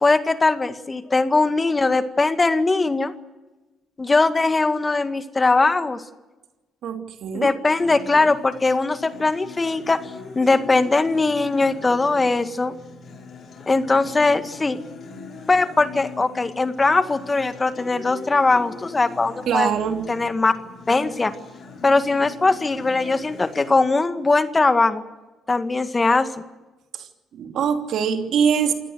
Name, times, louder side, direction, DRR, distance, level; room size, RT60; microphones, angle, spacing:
voice 1, 0.0-3.1 4.0-6.0 7.3-10.0 10.4-12.7 13.7-14.8 15.5-19.7 20.1-20.5 20.9-21.3 21.8-25.0 25.5-26.3, left 3 dB, 30° left, 9 dB, 2.0 m, -20 dB
voice 2, 6.8-7.5 19.5-20.1 26.9-27.1 27.3-28.7, right 7 dB, 70° right, 5 dB, 3.0 m, -23 dB
Acoustic guitar, 7.8-23.8, left 4 dB, 60° left, 7.3 m, -40 dB
28.0 x 17.5 x 8.0 m, 1.1 s
supercardioid pair, 65°, 0 cm